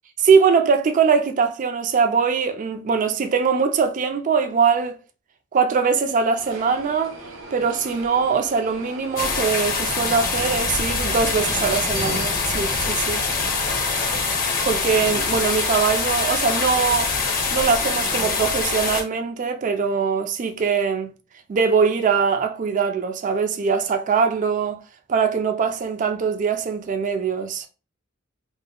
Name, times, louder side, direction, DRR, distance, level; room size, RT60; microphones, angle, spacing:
voice 1, 0.2-5.0 5.5-7.2 7.5-13.2 14.6-17.1 17.5-21.1 21.5-24.8 25.1-27.7, right 5 dB, 40° right, 0.3 m, -22 dB
sound 1, 6.4-15.4, right 2 dB, 75° right, 0.7 m, -37 dB
sound 2, 9.2-19.0, left 4 dB, 45° left, 0.7 m, -24 dB
2.1 x 2.0 x 3.6 m
head